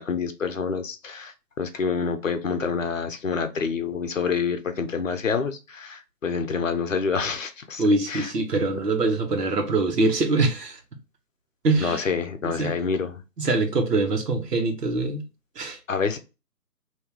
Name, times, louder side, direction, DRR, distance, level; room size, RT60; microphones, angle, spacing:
voice 1, 0.0-8.3 11.8-13.2 15.9-16.2, left 5 dB, 55° left, 0.7 m, -27 dB
voice 2, 7.8-10.8 11.6-12.0 12.4-12.7 13.4-15.2 15.6-15.8, right 3 dB, 70° right, 1.3 m, -23 dB
3.6 x 2.8 x 2.9 m
hypercardioid pair, 170°, 49 cm